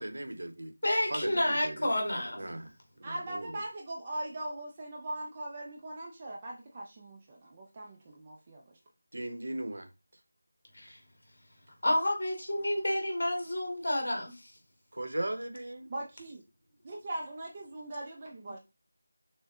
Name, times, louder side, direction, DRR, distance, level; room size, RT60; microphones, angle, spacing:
voice 1, 0.0-0.7 1.1-1.7 2.3-2.7 3.0-3.5 9.1-9.9 14.9-15.9, right 1 dB, 70° right, 0.9 m, -37 dB
voice 2, 0.8-2.4 10.7-11.0 11.8-14.5, left 1 dB, 50° left, 1.8 m, -30 dB
voice 3, 3.0-8.8 15.9-16.4 16.8-18.6, right 1 dB, 15° right, 0.4 m, -40 dB
6.3 x 2.1 x 3.5 m
figure-of-eight pair, 180°, 0 cm